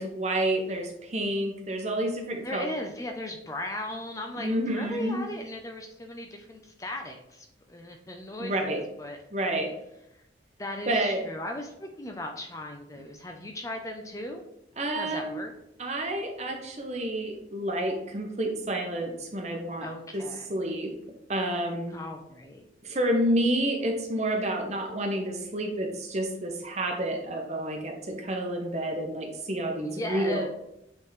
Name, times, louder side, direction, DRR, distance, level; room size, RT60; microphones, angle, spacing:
voice 1, 0.0-2.6 4.3-5.2 8.4-8.8 9.3-9.7 10.9-11.2 14.8-15.3 15.8-19.9 20.1-20.2 20.5-20.9 21.3-22.0 22.8-30.5, right 1 dB, 35° right, 3 dB, 1.0 m, -29 dB
voice 2, 2.4-9.2 10.6-14.4 15.0-15.5 19.8-20.5 21.9-22.7 29.8-30.5, left 1 dB, 15° left, 3 dB, 0.5 m, -37 dB
8.1 x 3.7 x 3.2 m, 0.82 s
head